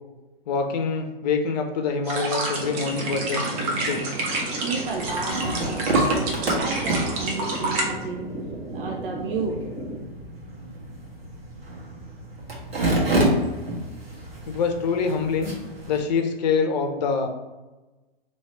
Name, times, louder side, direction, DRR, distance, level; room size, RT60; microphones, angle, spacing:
voice 1, 0.5-4.2 14.5-15.5 15.9-17.3, left 5 dB, 45° left, 5 dB, 0.7 m, -25 dB
sound 1, 2.0-7.9, right 2 dB, 40° right, 1.0 m, -29 dB
sound 2, 2.6-10.0, right 1 dB, 10° right, 0.4 m, -35 dB
voice 2, 4.6-8.3 8.7-9.6, right 4 dB, 60° right, 1 dB, 0.6 m, -32 dB
sound 3, 4.8-16.0, right 1 dB, 80° right, 1.5 m, -29 dB
3.1 x 3.0 x 4.3 m, 1.1 s
hypercardioid pair, 120°, 30 cm